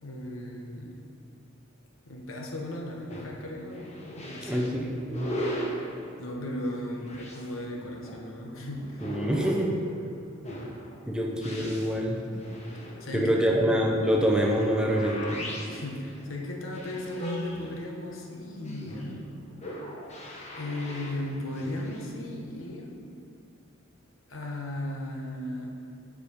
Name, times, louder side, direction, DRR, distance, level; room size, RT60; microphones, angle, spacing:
voice 1, 0.0-1.0 2.1-4.7 6.2-9.2 13.0-13.4 15.7-19.3 20.5-22.9 24.3-25.7, left 1 dB, 70° left, 0 dB, 1.0 m, -36 dB
sound 1, 3.1-22.1, equal, 35° left, 1.1 m, -39 dB
voice 2, 4.4-5.3 9.0-9.7 11.1-12.2 13.1-15.4, equal, 5° right, -1 dB, 0.6 m, -26 dB
7.2 x 5.1 x 5.2 m, 2.4 s
head